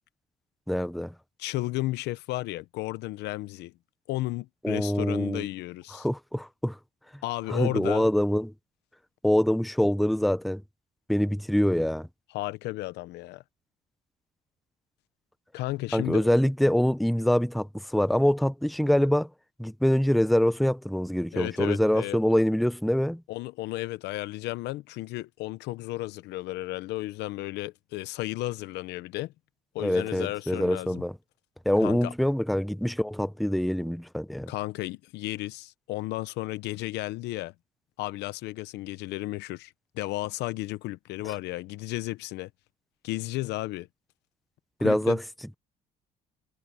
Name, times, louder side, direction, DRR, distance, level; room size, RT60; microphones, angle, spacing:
voice 1, 0.7-1.1 4.6-5.5 5.9-6.8 7.5-8.5 9.2-10.6 11.1-12.1 15.9-19.3 19.6-23.2 29.8-31.1 31.7-34.5 44.8-45.2, equal, ahead, 0.6 m, -25 dB
voice 2, 1.4-3.7 4.1-6.1 7.2-8.1 12.3-13.4 15.5-16.3 21.3-22.2 23.3-29.3 29.7-31.0 31.8-32.1 34.5-37.5 38.0-42.5 43.0-43.9 44.8-45.2, left 18 dB, 85° left, 0.9 m, -33 dB
cardioid pair, 110°, 17 cm